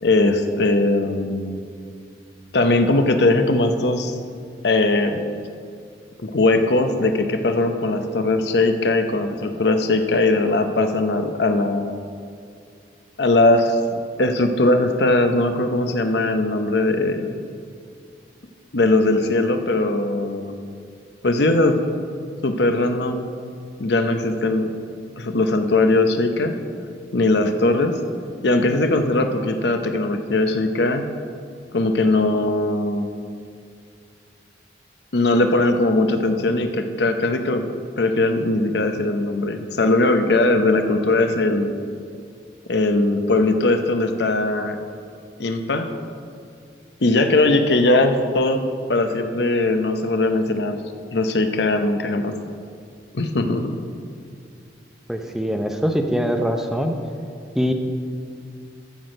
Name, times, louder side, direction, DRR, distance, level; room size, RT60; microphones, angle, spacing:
voice 1, 0.0-1.6 2.5-4.1 4.6-5.2 6.2-12.0 13.2-13.8 14.2-17.4 18.7-20.6 21.2-21.8 22.4-23.3 23.8-24.7 25.2-26.5 27.1-28.0 28.4-31.0 31.7-33.1 35.1-37.6 38.0-41.7 42.7-44.8 45.4-45.9 47.0-48.6 48.9-50.8 51.1-52.4 53.1-53.8, left 2 dB, 70° left, 7 dB, 0.7 m, -20 dB
voice 2, 55.1-56.9 57.5-57.7, equal, ahead, 4 dB, 0.6 m, -22 dB
14.0 x 6.2 x 5.2 m, 2.3 s
head